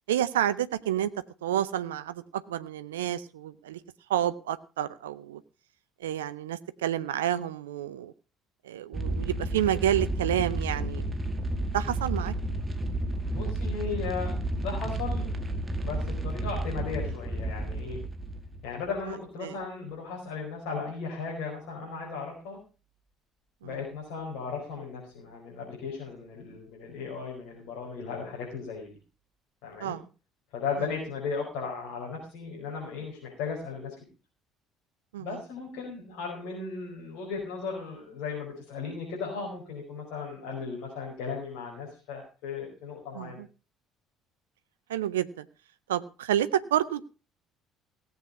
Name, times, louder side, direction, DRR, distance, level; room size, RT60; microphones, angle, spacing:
voice 1, 0.1-1.1 1.4-3.8 4.1-5.4 6.0-8.1 8.6-11.0 11.7-12.3 19.4-19.6 23.6-23.7 29.8-30.0 35.1-35.4 43.1-43.5 44.9-45.5 45.9-47.0, right 11 dB, 75° right, 15 dB, 0.6 m, -29 dB
sound 1, 8.9-19.0, right 1 dB, 20° right, 1.9 m, -31 dB
voice 2, 13.3-15.3 15.8-18.0 18.6-22.6 23.6-28.9 29.6-30.0 30.5-33.9 35.2-43.4, left 5 dB, 60° left, -3 dB, 5.0 m, -36 dB
17.0 x 8.0 x 5.4 m, 0.33 s
figure-of-eight pair, 55°, 0 cm